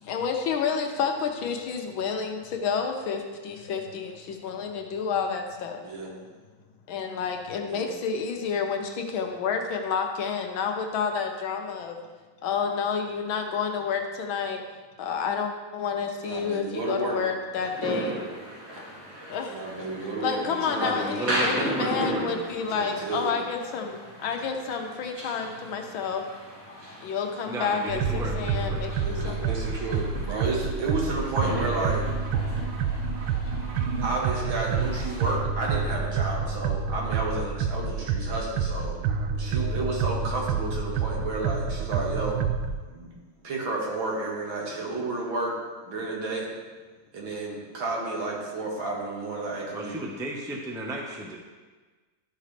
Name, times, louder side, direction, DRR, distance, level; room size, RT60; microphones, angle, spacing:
voice 1, 0.0-5.8 6.9-12.0 12.4-14.6 15.0-18.2 19.3-19.6 20.2-26.2 27.0-29.5, left 6 dB, 75° left, 4 dB, 1.6 m, -30 dB
voice 2, 5.8-6.2 7.6-7.9 16.2-17.2 19.5-21.0 22.7-23.3 29.0-32.0 34.0-39.0 39.4-42.4 42.9-43.1 43.4-45.5 45.9-46.5 47.1-50.0, right 2 dB, 70° right, -2 dB, 2.5 m, -31 dB
sound 1, 17.5-35.4, right 1 dB, 50° right, 2.2 m, -36 dB
voice 3, 20.7-22.5 27.5-28.8 49.7-51.4, right 1 dB, 5° right, -1 dB, 0.6 m, -34 dB
sound 2, 27.9-42.8, right 5 dB, 85° right, 1.5 m, -28 dB
12.5 x 6.1 x 3.3 m, 1.3 s
omnidirectional pair, 2.3 m